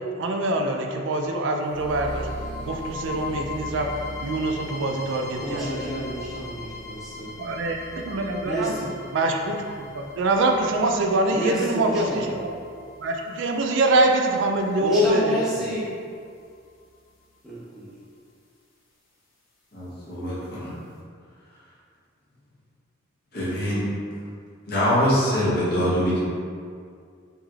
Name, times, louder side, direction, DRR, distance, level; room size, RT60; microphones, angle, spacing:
voice 1, 0.2-2.3 2.6-3.9 4.2-5.7 7.4-7.8 8.0-8.7 9.1-12.6 13.0-15.4, right 2 dB, 60° right, 3 dB, 0.3 m, -24 dB
sound 1, 1.7-15.7, left 2 dB, 70° left, 0.6 m, -39 dB
voice 2, 5.3-7.3 8.4-9.0 11.3-12.3 14.8-15.9 17.4-17.9, right 1 dB, ahead, -11 dB, 0.8 m, -30 dB
voice 3, 19.7-20.7 23.3-23.9 24.7-26.2, equal, 50° left, -9 dB, 0.9 m, -23 dB
3.1 x 2.9 x 2.3 m, 2.2 s
head